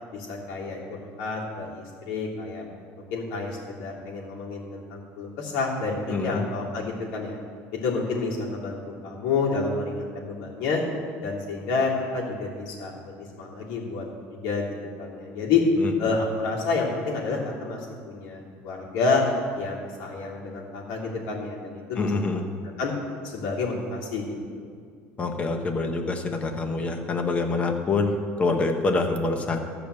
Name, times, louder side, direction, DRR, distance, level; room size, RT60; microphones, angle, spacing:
voice 1, 0.1-2.6 3.1-7.4 7.7-10.8 11.2-14.0 14.3-14.7 15.0-15.6 16.0-17.8 18.0-19.2 19.5-22.4 22.8-22.9 23.2-24.7, left 4 dB, 80° left, -4 dB, 3.1 m, -29 dB
voice 2, 6.1-6.4 15.8-15.9 22.0-22.4 25.2-29.6, left 3 dB, 20° left, 5 dB, 0.9 m, -26 dB
13.5 x 5.1 x 8.3 m, 2.1 s
cardioid pair, 170°, 6 cm